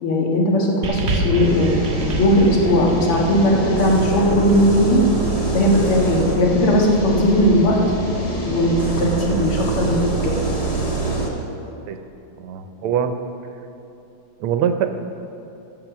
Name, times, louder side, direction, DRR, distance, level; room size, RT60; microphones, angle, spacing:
voice 1, 0.0-1.8 2.2-5.0 5.5-7.8 8.5-10.1, equal, 80° left, -2 dB, 2.6 m, -18 dB
sound 1, 0.8-5.4 6.2-6.3, right 1 dB, 50° right, 0.9 m, -28 dB
sound 2, 1.3-11.3, right 2 dB, 25° left, 1.0 m, -24 dB
voice 2, 12.4-13.2 14.4-14.9, right 8 dB, 80° right, 8 dB, 1.6 m, -22 dB
15.0 x 7.1 x 6.2 m, 2.8 s
omnidirectional pair, 2.4 m